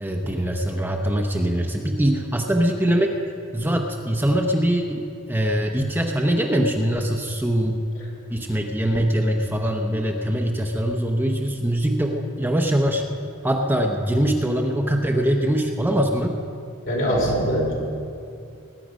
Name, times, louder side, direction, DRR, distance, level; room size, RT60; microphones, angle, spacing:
voice 1, 0.0-3.2 3.5-7.8 8.3-13.1 13.4-16.4, equal, 10° right, 2 dB, 0.7 m, -22 dB
voice 2, 16.9-17.7, equal, 65° left, -2 dB, 3.7 m, -22 dB
20.0 x 9.3 x 5.1 m, 2.5 s
head